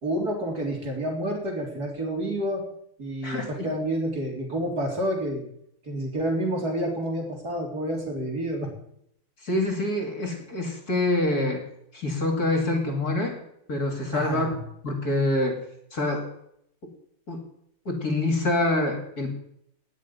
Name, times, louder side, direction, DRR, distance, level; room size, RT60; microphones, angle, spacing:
voice 1, 0.0-2.6 3.0-5.5 5.8-8.7 14.1-14.6, right 1 dB, 45° right, 0 dB, 4.3 m, -29 dB
voice 2, 3.2-3.7 9.4-11.6 11.9-13.4 13.7-14.5 14.8-15.6 15.9-16.2 17.3-17.4 17.8-19.3, left 2 dB, 45° left, 3 dB, 3.1 m, -26 dB
18.5 x 6.7 x 9.9 m, 0.73 s
omnidirectional pair, 2.4 m